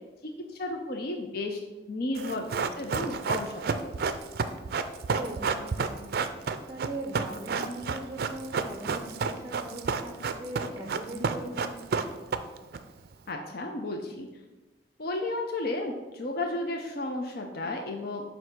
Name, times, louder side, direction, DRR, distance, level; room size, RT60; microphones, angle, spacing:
voice 1, 0.2-1.6 1.9-3.6 13.3-14.3 15.0-18.2, left 2 dB, 55° left, 3 dB, 0.6 m, -33 dB
Run, 2.1-12.8 13.0-13.1, right 5 dB, 60° right, 0.4 m, -30 dB
voice 2, 5.1-6.2 6.7-11.8, right 2 dB, 20° right, 1 dB, 0.6 m, -39 dB
7.8 x 2.7 x 5.9 m, 1.1 s
head